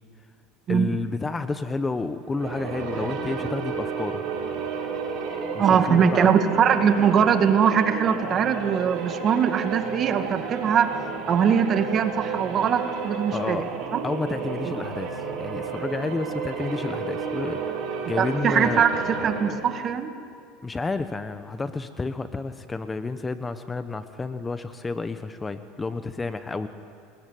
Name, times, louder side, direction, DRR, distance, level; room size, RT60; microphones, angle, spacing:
voice 1, 0.7-4.2 5.5-6.3 13.3-13.8 14.0-18.8 20.6-26.7, left 3 dB, 15° left, 10 dB, 1.0 m, -30 dB
sound 1, 2.2-19.7, right 6 dB, 55° right, 6.0 m, -32 dB
voice 2, 5.6-10.9 11.3-13.6 13.9-14.0 14.6-14.7 18.2-20.1, right 7 dB, 35° right, 7 dB, 2.1 m, -21 dB
29.0 x 21.5 x 9.3 m, 2.4 s
supercardioid pair, 120°, 0 cm